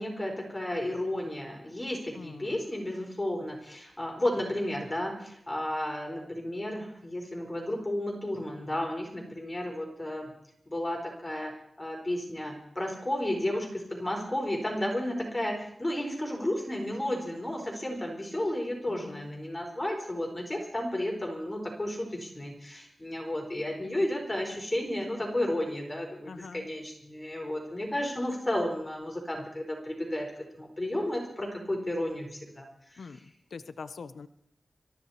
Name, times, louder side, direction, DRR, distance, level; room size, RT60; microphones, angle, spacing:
voice 1, 0.0-10.3 10.7-11.5 11.8-30.3 30.5-32.6 32.9-33.1, left 1 dB, 15° left, 0 dB, 4.4 m, -33 dB
voice 2, 2.1-2.6 18.9-19.3 26.3-26.7 33.0-34.3, left 5 dB, 90° left, 13 dB, 0.6 m, -44 dB
25.0 x 13.5 x 4.3 m, 0.73 s
wide cardioid pair, 85°, 0 cm